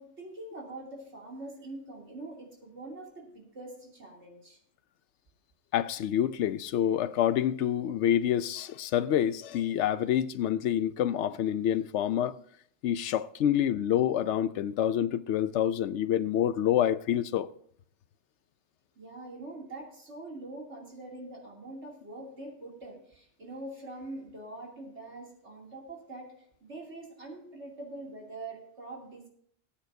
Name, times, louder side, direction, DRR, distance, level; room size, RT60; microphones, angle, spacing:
voice 1, 0.0-4.6 19.0-26.3 26.6-29.3, right 2 dB, 75° right, 3.2 m, -44 dB
voice 2, 5.7-12.4 12.8-17.5, left 10 dB, 80° left, 0.9 m, -27 dB
19.0 x 8.8 x 2.7 m
omnidirectional pair, 1.2 m